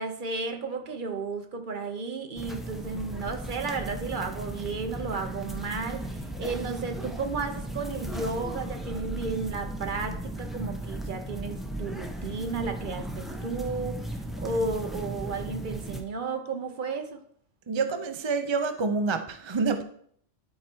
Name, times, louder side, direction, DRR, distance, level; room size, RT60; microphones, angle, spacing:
voice 1, 0.0-17.2, right 4 dB, 50° right, 0.9 m, -33 dB
sound 1, 2.4-16.0, right 1 dB, ahead, 0.8 m, -36 dB
voice 2, 17.7-19.8, right 4 dB, 35° right, 0.5 m, -27 dB
12.0 x 4.6 x 4.5 m
omnidirectional pair, 1.2 m